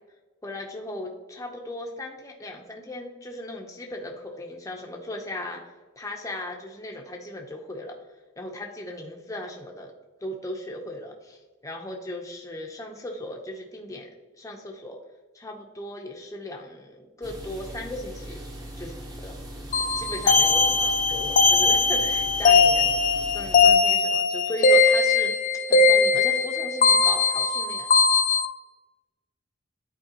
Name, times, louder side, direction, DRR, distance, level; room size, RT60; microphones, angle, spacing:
voice 1, 0.4-7.9 8.4-9.9 10.2-15.0 15.3-18.4 18.8-18.9 19.2-19.3 19.9-22.9 23.3-25.4 25.7-27.9, left 1 dB, 15° left, 0 dB, 0.7 m, -37 dB
sound 1, 17.2-23.8, equal, 20° right, 0.9 m, -40 dB
sound 2, 19.7-28.5, left 4 dB, 40° left, 0.4 m, -20 dB
10.5 x 4.5 x 2.9 m, 1.2 s
head